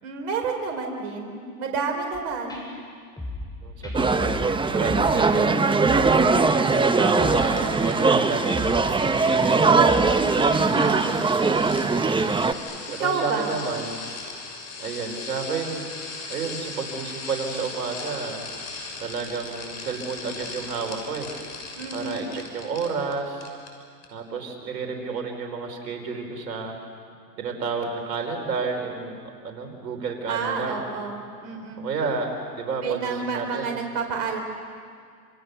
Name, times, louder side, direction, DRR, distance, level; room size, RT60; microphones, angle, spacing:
voice 1, 0.0-2.6 9.3-11.2 13.0-13.6 21.7-22.2 30.3-31.8 32.8-34.4, right 5 dB, 60° right, 2 dB, 4.4 m, -30 dB
sound 1, 2.1-2.2 2.5-2.6 3.2-3.5 3.8-4.5 4.8-5.3 5.8-6.2 6.5-6.6 7.2-7.5 7.8-8.0 8.5-8.9 9.2-9.3 9.8-10.2 10.5-10.6, left 2 dB, 10° left, 7.8 m, -34 dB
voice 2, 3.6-4.3 4.7-6.3 6.8-9.8 12.9-14.0 14.8-15.9 16.3-18.5 19.0-21.3 21.9-23.5 24.1-26.8 27.4-29.2 29.4-30.8 31.8-32.3 32.6-33.8, right 4 dB, 80° right, 3 dB, 4.7 m, -30 dB
sound 2, 3.9-12.5, right 4 dB, 10° right, 1.1 m, -21 dB
sound 3, 6.7-23.1 23.4-23.7 24.0-24.1, left 4 dB, 30° left, 6.5 m, -39 dB
28.5 x 28.0 x 7.0 m, 2.2 s
hypercardioid pair, 105°, 49 cm